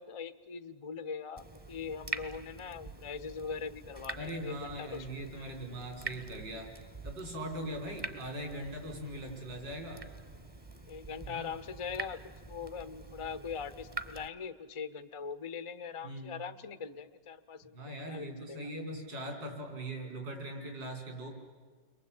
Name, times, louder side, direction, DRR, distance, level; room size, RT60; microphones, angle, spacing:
voice 1, 0.0-5.1 5.3-5.6 10.9-17.8 18.1-18.7, left 6 dB, 35° left, 11 dB, 0.4 m, -41 dB
Water tap faucet / Drip, 1.4-14.3, right 3 dB, 20° right, 0.8 m, -45 dB
voice 2, 4.2-6.7 7.0-10.0 11.2-11.5 16.0-16.4 17.7-21.3, right 1 dB, 75° right, 2 dB, 5.9 m, -41 dB
30.0 x 22.5 x 8.8 m, 1.5 s
omnidirectional pair, 2.0 m